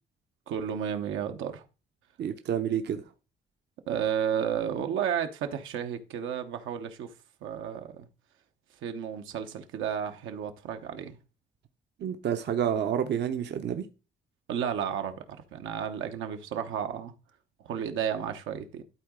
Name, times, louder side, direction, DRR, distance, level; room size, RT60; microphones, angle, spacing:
voice 1, 0.5-1.6 3.9-7.1 7.4-8.1 8.8-11.2 14.5-17.1 17.6-18.8, right 8 dB, 85° right, 1.0 m, -32 dB
voice 2, 2.2-3.0 12.0-13.9, right 9 dB, 60° right, 0.7 m, -29 dB
12.0 x 4.0 x 3.7 m
cardioid pair, 90°, 20 cm